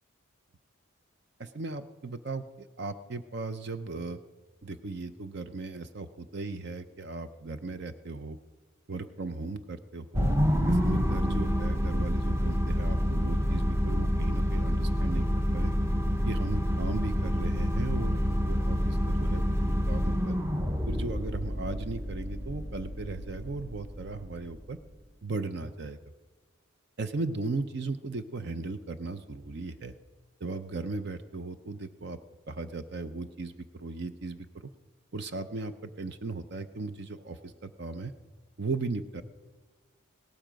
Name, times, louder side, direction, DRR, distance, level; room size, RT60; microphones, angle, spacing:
voice 1, 1.4-4.2 4.6-8.4 8.9-10.3 10.7-15.2 15.5-15.7 16.3-18.2 18.5-19.6 19.9-20.4 20.9-24.8 25.2-26.0 27.0-29.9 30.4-32.2 32.5-34.7 35.1-38.1 38.6-39.2, right 3 dB, 50° right, 10 dB, 0.6 m, -37 dB
sound 1, 10.1-24.6, equal, 10° right, 0.8 m, -28 dB
17.0 x 12.0 x 5.1 m, 1.4 s
head